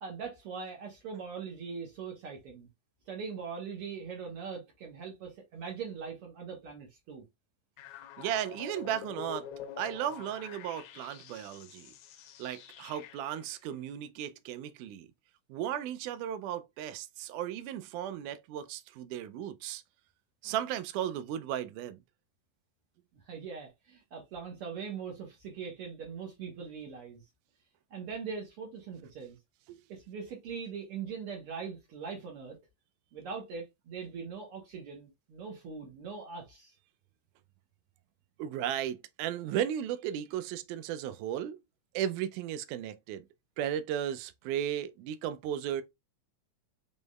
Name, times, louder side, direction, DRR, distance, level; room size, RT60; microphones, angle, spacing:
voice 1, 0.0-2.7 3.1-7.2 23.3-27.2 27.9-29.4 29.9-32.6 33.1-36.7, right 6 dB, 65° right, 1.5 m, -41 dB
sound 1, 7.8-13.5, left 9 dB, 80° left, 1.8 m, -46 dB
voice 2, 8.2-9.5 9.8-11.9 12.4-15.1 15.5-19.8 20.4-22.0 29.7-29.8 38.4-41.6 41.9-43.3 43.6-45.8, right 10 dB, 80° right, 2.0 m, -35 dB
5.2 x 3.5 x 2.2 m
omnidirectional pair, 3.8 m